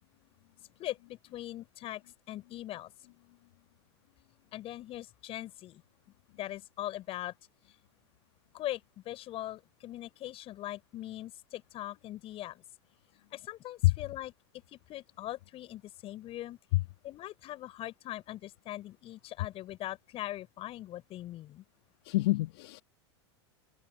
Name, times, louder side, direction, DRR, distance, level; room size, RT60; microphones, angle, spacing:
voice 1, 0.8-2.0 2.3-2.9 4.5-5.8 6.4-7.3 8.5-12.6 13.3-14.3 14.7-16.6 17.0-21.6, left 14 dB, 40° left, 4.7 m, -41 dB
voice 2, 22.0-22.8, left 19 dB, 60° left, 1.4 m, -26 dB
hypercardioid pair, 90°, 15 cm